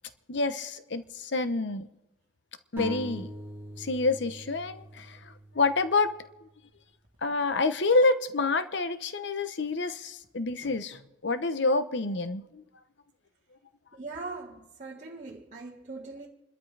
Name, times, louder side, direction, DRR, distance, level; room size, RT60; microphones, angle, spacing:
voice 1, 0.3-1.9 2.7-3.3 3.8-6.1 7.2-12.6, left 3 dB, 60° left, 0.9 m, -28 dB
sound 1, 2.8-6.4, equal, 10° right, 2.2 m, -42 dB
voice 2, 13.9-16.3, right 3 dB, 40° right, 1.6 m, -41 dB
28.5 x 13.0 x 3.4 m
head